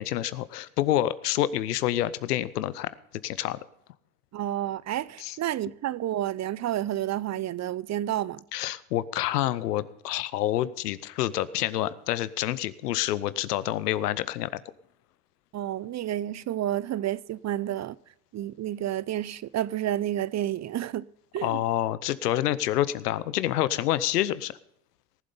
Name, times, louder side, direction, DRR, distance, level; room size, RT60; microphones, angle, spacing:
voice 1, 0.0-2.9 3.2-3.6 5.2-5.4 8.5-14.6 21.4-24.5, left 13 dB, 90° left, 0.8 m, -27 dB
voice 2, 4.3-8.4 15.5-18.0 18.3-21.1 21.3-21.6, right 12 dB, 40° right, 0.6 m, -30 dB
18.5 x 7.7 x 5.4 m
hypercardioid pair, 65°, 46 cm